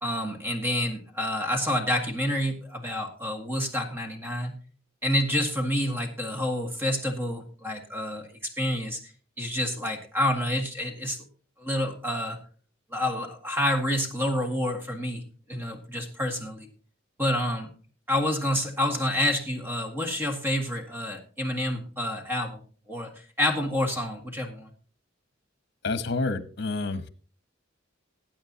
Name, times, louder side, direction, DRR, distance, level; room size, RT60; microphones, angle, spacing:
voice 1, 0.0-4.6 5.0-9.1 9.4-11.2 11.6-12.4 12.9-15.2 15.5-16.7 17.2-17.7 18.1-23.1 23.4-24.7, left 1 dB, 10° right, 3 dB, 1.8 m, -28 dB
voice 2, 25.8-27.1, left 3 dB, 60° left, 12 dB, 1.0 m, -29 dB
19.5 x 8.8 x 2.8 m, 0.40 s
head